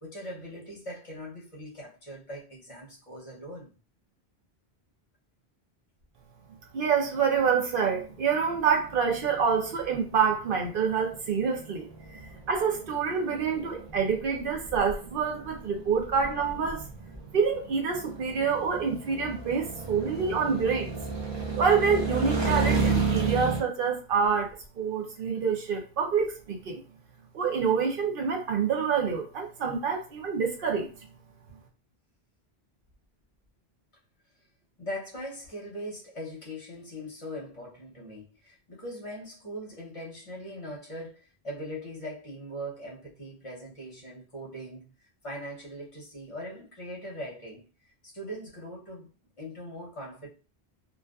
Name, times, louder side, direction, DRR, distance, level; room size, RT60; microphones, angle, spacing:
voice 1, 0.0-3.7 34.8-44.9 45.2-47.6 48.0-49.1 49.4-50.3, equal, 35° left, 0.7 m, -40 dB
voice 2, 6.7-11.9 12.1-16.9 17.3-20.9 21.5-26.8 27.3-30.9, right 6 dB, 65° right, 0.8 m, -27 dB
sound 1, 7.5-23.6, right 4 dB, 40° right, 0.4 m, -33 dB
2.4 x 2.3 x 2.3 m
omnidirectional pair, 1.0 m